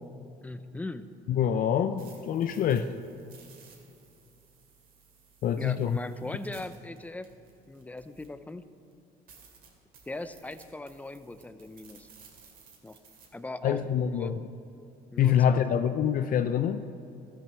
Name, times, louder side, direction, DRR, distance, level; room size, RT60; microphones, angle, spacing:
voice 1, 0.4-1.1 2.7-2.8 5.6-7.3 7.7-8.6 10.1-12.1 12.8-13.0 13.3-14.3 15.1-15.9, left 2 dB, 10° left, 12 dB, 0.5 m, -39 dB
voice 2, 1.3-2.9 5.4-6.0 13.6-14.4 15.2-16.8, left 9 dB, 55° left, 9 dB, 0.5 m, -25 dB
sound 1, 1.7-8.5 8.9-9.0 9.3-13.3, right 5 dB, 60° right, 2.4 m, -57 dB
13.5 x 7.5 x 6.3 m, 2.6 s
cardioid pair, 110°, 17 cm